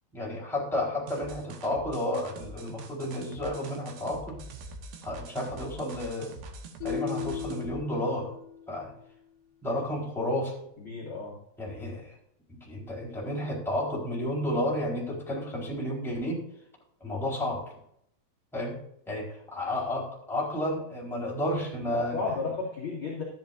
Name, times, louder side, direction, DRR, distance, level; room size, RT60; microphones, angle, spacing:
voice 1, 0.1-4.4 5.0-6.3 6.8-8.3 8.7-8.9 9.6-10.5 11.6-12.1 12.6-16.4 17.0-17.6 18.5-18.8 19.1-22.3, left 1 dB, ahead, -4 dB, 3.4 m, -31 dB
sound 1, 1.1-7.8, right 3 dB, 70° right, 2.8 m, -45 dB
sound 2, 6.8-9.0, left 10 dB, 80° left, 3.0 m, -37 dB
voice 2, 10.8-11.4 21.9-23.2, left 4 dB, 40° left, -4 dB, 2.0 m, -33 dB
13.0 x 10.5 x 2.6 m, 0.71 s
omnidirectional pair, 5.3 m